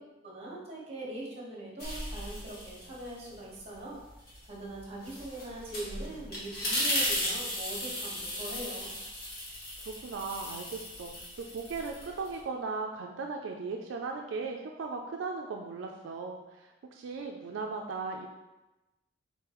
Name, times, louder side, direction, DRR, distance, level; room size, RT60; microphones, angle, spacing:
voice 1, 0.2-4.0 4.5-8.9, right 1 dB, 30° right, -4 dB, 1.2 m, -42 dB
sound 1, 1.8-3.3 3.7-12.4, left 1 dB, 50° left, 1.1 m, -36 dB
voice 2, 10.0-11.2 11.5-18.3, right 4 dB, 75° right, 2 dB, 0.3 m, -37 dB
4.1 x 3.7 x 2.9 m, 1.0 s
head